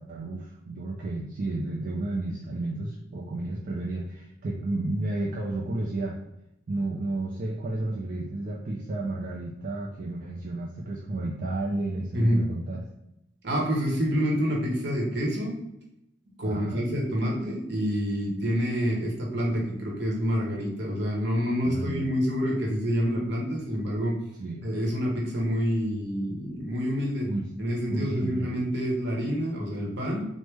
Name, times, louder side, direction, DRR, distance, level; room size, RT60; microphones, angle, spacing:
voice 1, 0.0-6.2 6.7-12.8 16.4-16.8 21.6-22.0 24.4-24.6 27.3-27.5 27.9-28.5, right 2 dB, 45° right, -3 dB, 0.4 m, -32 dB
voice 2, 12.1-12.4 13.4-15.5 16.4-24.2 24.6-27.3 27.6-30.3, equal, 65° right, -2 dB, 0.9 m, -27 dB
3.2 x 2.0 x 3.3 m, 0.84 s
head